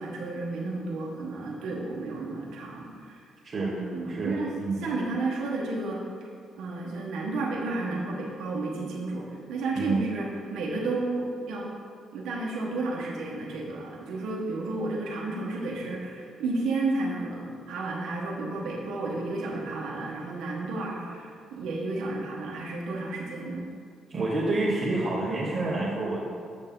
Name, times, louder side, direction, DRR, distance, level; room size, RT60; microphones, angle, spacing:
voice 1, 0.0-3.2 3.6-4.5 4.8-6.0 6.6-11.7 12.1-23.6, right 2 dB, 85° right, -3 dB, 1.1 m, -32 dB
voice 2, 4.1-4.9 9.7-10.0 24.1-26.2, right 2 dB, 45° right, -8 dB, 1.3 m, -28 dB
7.1 x 6.7 x 3.8 m, 2.2 s
cardioid pair, 90°, 0 cm